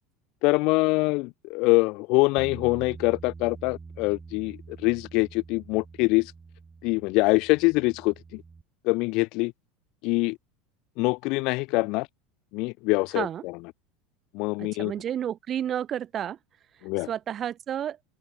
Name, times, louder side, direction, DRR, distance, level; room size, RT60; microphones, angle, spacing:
voice 1, 0.4-6.3 6.8-8.4 8.8-9.5 10.0-10.4 11.0-12.1 12.5-13.6 14.3-14.9 16.8-17.1, left 25 dB, 60° left, 0.7 m, -24 dB
Bass guitar, 2.4-8.6, right 4 dB, 15° right, 6.2 m, -45 dB
voice 2, 14.6-16.4 17.1-18.0, right 10 dB, 35° right, 6.2 m, -31 dB
open air
supercardioid pair, 130°, 0 cm